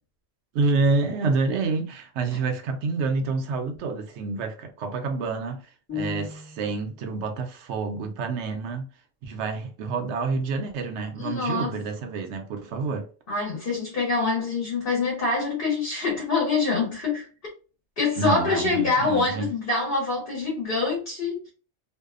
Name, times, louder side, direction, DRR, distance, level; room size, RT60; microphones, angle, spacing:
voice 1, 0.5-5.6 5.9-8.9 9.2-13.1 18.2-19.5, right 4 dB, 75° right, 0.8 m, -28 dB
sound 1, 5.9-6.9, left 7 dB, 10° left, 0.7 m, -35 dB
voice 2, 11.2-11.8 13.3-17.2 18.0-21.5, left 3 dB, 50° left, 1.1 m, -25 dB
2.6 x 2.2 x 2.3 m
omnidirectional pair, 1.2 m